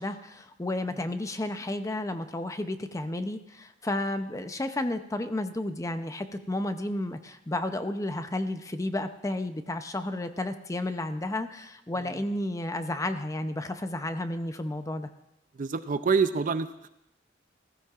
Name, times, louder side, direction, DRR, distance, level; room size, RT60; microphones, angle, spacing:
voice 1, 0.0-15.1, left 1 dB, 20° left, 9 dB, 0.6 m, -32 dB
voice 2, 15.6-16.9, right 5 dB, 45° right, 12 dB, 0.4 m, -26 dB
15.5 x 15.0 x 2.4 m, 0.83 s
head